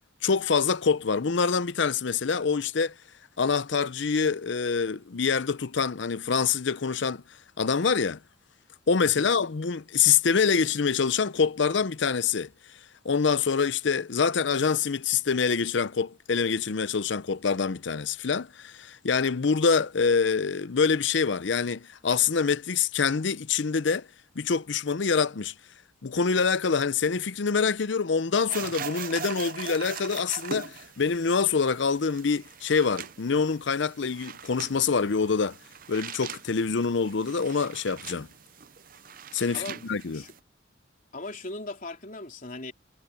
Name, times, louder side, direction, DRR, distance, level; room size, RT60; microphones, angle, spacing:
voice 1, 0.2-2.9 3.4-7.2 7.6-8.2 8.9-12.5 13.0-24.1 24.4-25.5 26.0-35.6 35.9-38.3 39.3-40.2, left 5 dB, 65° left, 0.6 m, -25 dB
sound 1, 28.5-40.4, right 7 dB, 45° right, 0.6 m, -42 dB
voice 2, 41.1-42.7, left 2 dB, 45° left, 3.7 m, -38 dB
head